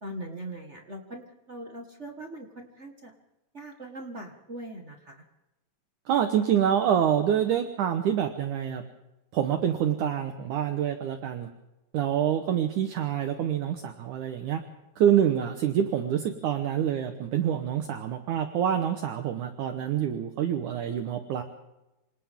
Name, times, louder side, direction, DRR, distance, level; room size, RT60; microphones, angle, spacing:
voice 1, 0.0-3.1 3.5-5.2, right 1 dB, 35° right, 3 dB, 1.1 m, -41 dB
voice 2, 6.1-8.8 9.3-11.5 11.9-14.6 15.0-21.4, right 9 dB, 65° right, 6 dB, 2.4 m, -26 dB
28.0 x 25.5 x 3.7 m, 0.97 s
omnidirectional pair, 4.1 m